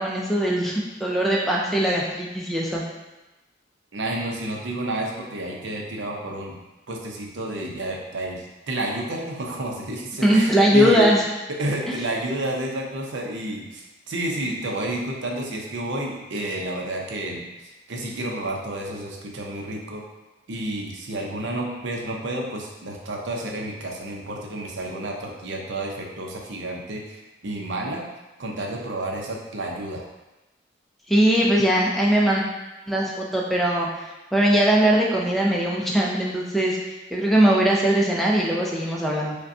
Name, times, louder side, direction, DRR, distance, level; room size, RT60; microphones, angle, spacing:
voice 1, 0.0-2.8 10.2-11.2 31.1-32.4 32.9-33.9 34.3-36.8 37.1-39.4, right 1 dB, ahead, -3 dB, 0.4 m, -20 dB
voice 2, 3.9-6.6 6.9-11.1 11.6-20.0 20.5-28.0 28.4-30.0, right 1 dB, 75° right, -1 dB, 0.6 m, -30 dB
5.0 x 2.2 x 2.7 m, 1.1 s
head